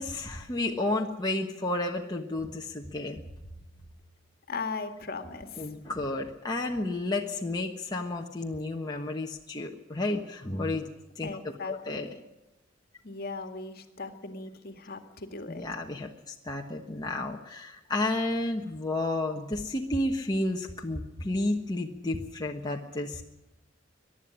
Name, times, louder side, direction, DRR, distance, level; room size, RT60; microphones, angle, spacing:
voice 1, 0.0-3.2 5.6-10.9 11.2-11.4 11.6-12.1 15.5-23.2, left 2 dB, 20° left, 0 dB, 1.3 m, -31 dB
voice 2, 4.5-5.7 11.2-12.2 13.0-15.7, left 4 dB, 50° left, 6 dB, 2.0 m, -38 dB
22.5 x 11.5 x 10.0 m, 0.97 s
head